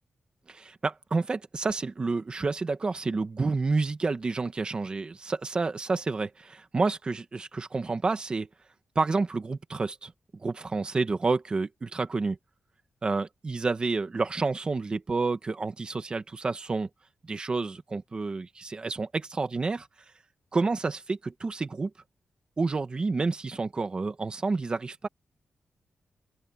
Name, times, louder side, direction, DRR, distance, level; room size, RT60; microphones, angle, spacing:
voice 1, 0.5-8.5 8.9-10.1 10.4-12.4 13.0-16.9 17.2-19.9 20.5-21.9 22.6-25.1, right 3 dB, 25° right, 1.6 m, -29 dB
open air
wide cardioid pair, 170°, 3 cm